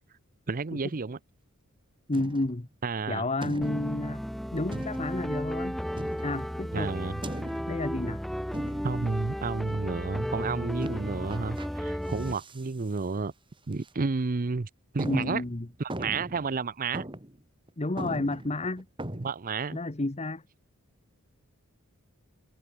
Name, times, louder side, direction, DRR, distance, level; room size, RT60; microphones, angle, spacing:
voice 1, 0.5-1.2 2.8-3.3 6.7-7.2 8.8-13.3 13.7-14.7 14.9-15.4 15.8-17.0 19.2-19.8, right 4 dB, 40° right, 0.6 m, -31 dB
voice 2, 2.1-2.7 3.1-4.2 4.5-5.8 6.2-6.9 7.7-8.2 15.0-15.7 17.8-18.9 19.7-20.4, left 2 dB, 30° left, 1.1 m, -31 dB
sound 1, 2.1-2.7 3.4-4.0 4.7-5.3 6.0-6.5 7.2-7.9 8.5-9.1 9.7-10.1 10.8-11.7 12.1-12.7 13.0-13.1 13.7-13.9 14.4-14.5 15.0-16.5 16.9-17.4 17.7-17.8 18.0-19.3, right 1 dB, 25° right, 3.0 m, -39 dB
sound 2, 3.6-12.4, equal, ahead, 0.3 m, -34 dB
head